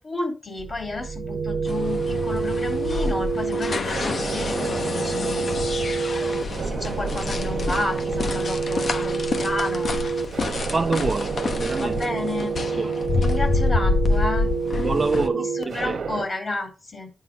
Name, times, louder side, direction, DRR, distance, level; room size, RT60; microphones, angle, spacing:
voice 1, 0.0-5.5 6.5-10.0 11.8-14.6 15.3-17.1, left 2 dB, 40° left, 3.7 m, -31 dB
sound 1, 0.6-16.2, right 5 dB, 85° right, 1.0 m, -28 dB
sound 2, 1.6-15.3, left 3 dB, 60° left, 1.0 m, -27 dB
voice 2, 10.7-12.2 12.8-13.0 14.8-16.0, right 3 dB, 40° right, 0.8 m, -26 dB
9.5 x 4.2 x 5.3 m
wide cardioid pair, 95°, 0 cm